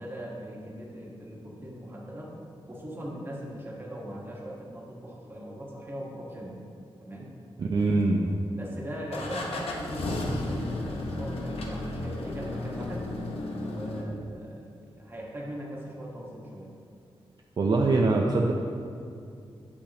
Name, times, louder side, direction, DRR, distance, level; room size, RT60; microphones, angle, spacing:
voice 1, 0.0-2.4 2.7-6.6 7.0-7.3 8.5-13.1 13.7-16.7, equal, 25° right, -2 dB, 1.3 m, -40 dB
voice 2, 7.6-8.3 17.6-18.5, right 3 dB, 45° right, 0 dB, 0.5 m, -23 dB
sound 1, 7.8-8.4 9.1-14.0, left 2 dB, 90° left, 1.0 m, -33 dB
8.7 x 8.4 x 2.8 m, 2.4 s
wide cardioid pair, 140°, 10 cm